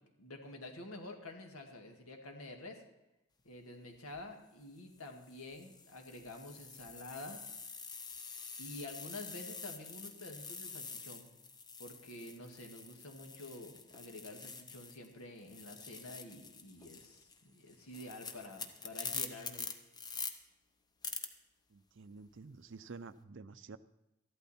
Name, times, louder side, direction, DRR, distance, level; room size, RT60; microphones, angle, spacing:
voice 1, 0.2-2.8 3.4-7.4 8.6-11.3 11.8-19.7, left 2 dB, 85° left, 3 dB, 1.9 m, -49 dB
sound 1, 4.0-4.2 5.0-15.1 15.4-20.3 21.0-21.3, left 5 dB, 20° left, 0.6 m, -46 dB
voice 2, 21.7-23.8, right 4 dB, 55° right, 14 dB, 0.5 m, -50 dB
14.0 x 12.0 x 4.3 m, 0.94 s
head